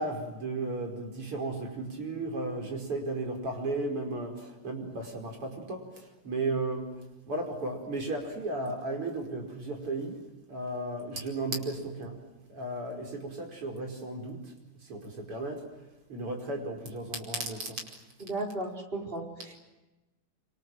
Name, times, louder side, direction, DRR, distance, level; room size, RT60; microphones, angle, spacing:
voice 1, 0.0-10.2 10.5-12.2 12.5-14.5 14.9-15.7 16.1-17.8, right 2 dB, 90° right, 3 dB, 6.0 m, -35 dB
voice 2, 18.2-19.6, right 2 dB, 25° right, 1 dB, 5.0 m, -35 dB
27.0 x 26.0 x 7.8 m, 1.1 s
omnidirectional pair, 2.4 m